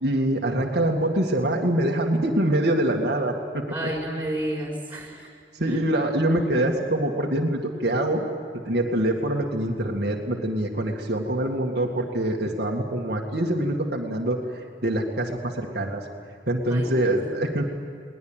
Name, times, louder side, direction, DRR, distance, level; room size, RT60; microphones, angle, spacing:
voice 1, 0.0-3.9 5.6-8.2 8.7-16.0 16.5-17.7, right 1 dB, 65° right, 0 dB, 2.1 m, -24 dB
voice 2, 3.7-5.3 5.6-5.8 16.7-17.1, right 1 dB, 10° right, -2 dB, 5.4 m, -31 dB
21.5 x 19.5 x 9.0 m, 2.4 s
head